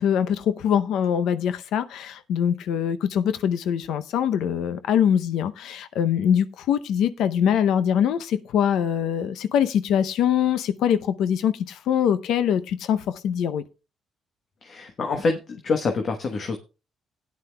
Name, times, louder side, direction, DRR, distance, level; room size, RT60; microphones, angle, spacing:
voice 1, 0.0-13.6, left 9 dB, 85° left, 0.6 m, -23 dB
voice 2, 14.6-16.6, left 4 dB, 55° left, 1.1 m, -26 dB
16.5 x 9.6 x 2.2 m
cardioid pair, 90°, 0 cm